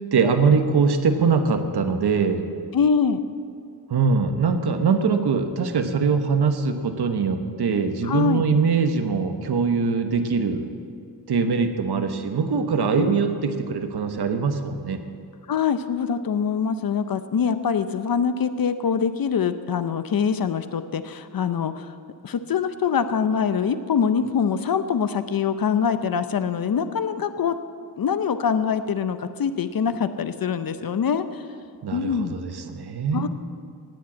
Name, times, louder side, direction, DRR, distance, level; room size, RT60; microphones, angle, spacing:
voice 1, 0.1-2.4 3.9-10.6 11.3-15.0 31.8-33.3, right 5 dB, 85° right, 7 dB, 1.2 m, -22 dB
voice 2, 2.7-3.2 8.0-8.4 13.0-13.1 15.5-21.9 22.2-27.6 28.0-31.4 31.9-32.4 33.1-33.3, left 6 dB, 65° left, 11 dB, 0.7 m, -24 dB
18.5 x 7.7 x 8.4 m, 2.4 s
wide cardioid pair, 180°, 38 cm